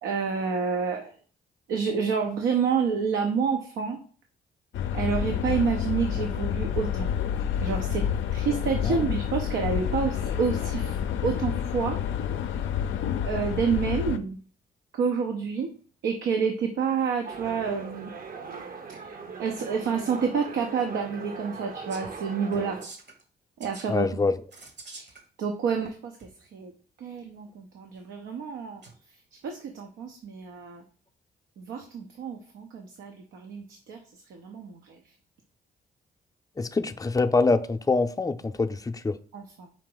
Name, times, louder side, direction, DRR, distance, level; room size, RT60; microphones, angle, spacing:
voice 1, 0.0-1.2 1.7-4.0 4.9-7.1 7.6-12.0 13.2-14.4 14.9-15.7 16.0-18.1 18.9-22.8 23.6-24.2 24.9-26.7 27.0-30.8 31.6-35.2 39.3-39.7, right 6 dB, 90° right, 0.5 m, -29 dB
sound 1, 4.7-14.2, left 9 dB, 80° left, 0.4 m, -29 dB
sound 2, 17.2-22.9, right 5 dB, 50° right, 0.6 m, -40 dB
sound 3, 21.9-22.2 22.5-23.2 23.6-23.9 24.5-25.2 26.2-26.3 28.8-28.9, right 3 dB, 65° right, 1.2 m, -45 dB
voice 2, 23.9-24.3 36.6-39.2, left 3 dB, 20° left, 0.4 m, -25 dB
4.8 x 2.8 x 3.8 m
supercardioid pair, 50°, 19 cm